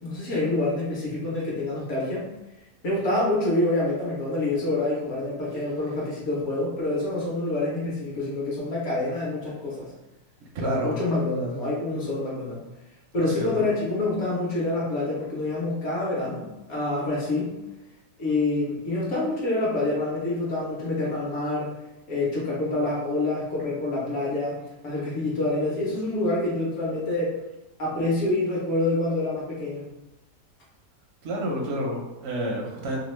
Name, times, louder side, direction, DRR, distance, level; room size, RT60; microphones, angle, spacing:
voice 1, 0.0-2.3 2.8-9.9 10.6-12.6 13.1-17.6 18.2-21.7 22.1-24.6 24.8-27.3 27.8-29.8, left 2 dB, 55° left, -5 dB, 1.0 m, -27 dB
voice 2, 10.5-11.0 13.2-13.7 31.2-33.0, right 1 dB, 65° right, -1 dB, 0.7 m, -29 dB
2.9 x 2.2 x 3.1 m, 1.0 s
omnidirectional pair, 1.8 m